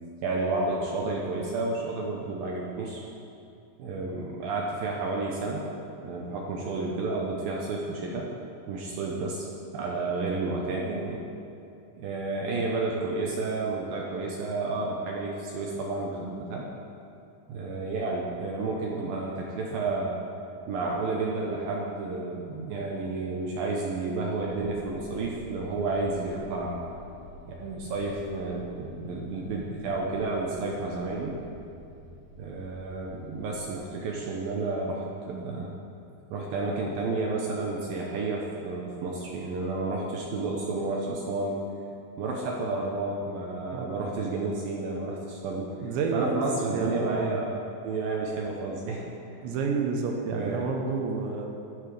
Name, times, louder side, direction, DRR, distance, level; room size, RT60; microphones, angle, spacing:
voice 1, 0.2-3.0 3.8-5.7 5.9-8.3 8.7-9.5 9.7-11.2 12.0-16.7 17.5-20.2 20.7-26.8 27.5-31.4 32.4-35.7 36.3-41.6 42.2-45.8 46.1-47.6 47.8-49.2 50.3-50.7, right 3 dB, 75° right, -2 dB, 2.3 m, -31 dB
sound 1, 24.4-33.9, left 2 dB, 75° left, 2.3 m, -48 dB
voice 2, 45.8-47.4 49.4-51.5, right 4 dB, 90° right, 1 dB, 3.3 m, -30 dB
15.0 x 11.0 x 3.4 m, 2.6 s
omnidirectional pair, 5.0 m